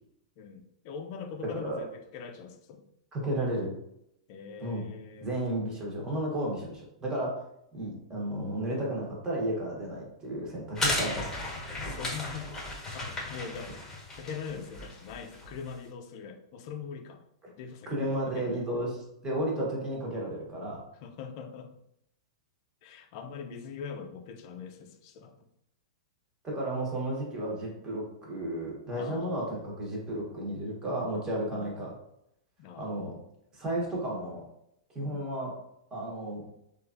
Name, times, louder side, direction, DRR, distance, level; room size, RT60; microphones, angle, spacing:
voice 1, 0.4-2.8 4.3-5.3 11.0-11.1 11.8-12.5 12.9-13.7 14.1-17.2 17.6-18.7 21.0-21.8 22.8-25.4 28.9-29.5 31.5-31.7 32.6-33.1 35.0-35.3, left 6 dB, 50° left, 6 dB, 0.4 m, -42 dB
voice 2, 3.1-3.7 4.6-4.8 5.2-7.3 7.7-11.2 17.9-19.0 19.2-20.8 26.4-31.9 32.8-33.1 33.5-34.4 34.9-35.5 35.9-36.4, right 1 dB, 20° right, -3 dB, 1.0 m, -33 dB
sound 1, 10.7-15.7, left 1 dB, 15° left, 1.1 m, -35 dB
3.1 x 2.4 x 2.5 m, 0.78 s
hypercardioid pair, 130°, 3 cm